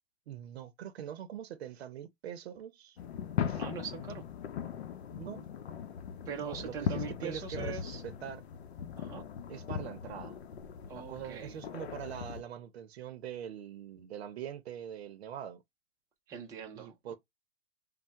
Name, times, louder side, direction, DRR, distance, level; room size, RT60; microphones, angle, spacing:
voice 1, 0.3-3.0 3.5-3.6 5.1-5.5 6.4-8.4 9.5-10.4 10.9-15.6 16.8-17.2, right 9 dB, 80° right, 0.6 m, -43 dB
sound 1, 3.0-12.4, left 8 dB, 85° left, 0.6 m, -39 dB
voice 2, 3.6-4.2 6.3-8.0 9.0-9.2 10.9-11.5 16.3-17.0, right 7 dB, 10° right, 0.4 m, -41 dB
3.2 x 2.1 x 2.8 m
hypercardioid pair, 140°, 31 cm